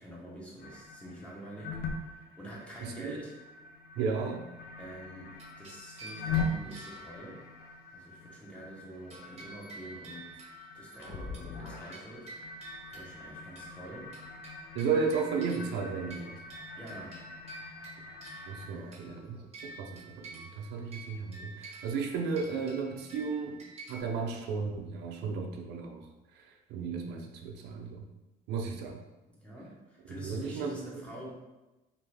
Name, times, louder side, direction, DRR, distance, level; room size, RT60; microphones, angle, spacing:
voice 1, 0.0-3.3 4.8-7.4 7.9-10.4 10.7-14.1 16.7-17.2 18.7-19.3 29.4-31.3, right 1 dB, 5° left, -5 dB, 0.9 m, -47 dB
sound 1, 0.6-18.7, left 4 dB, 65° left, 0.5 m, -42 dB
voice 2, 2.8-3.2 4.0-4.5 14.7-16.4 18.5-23.6 23.9-28.1 28.5-29.0 30.2-31.0, right 5 dB, 85° right, 3 dB, 0.4 m, -34 dB
sound 2, 5.4-7.8 9.1-24.0, right 2 dB, 40° right, 0.7 m, -50 dB
2.7 x 2.5 x 3.2 m, 1.1 s
cardioid pair, 110°, 17 cm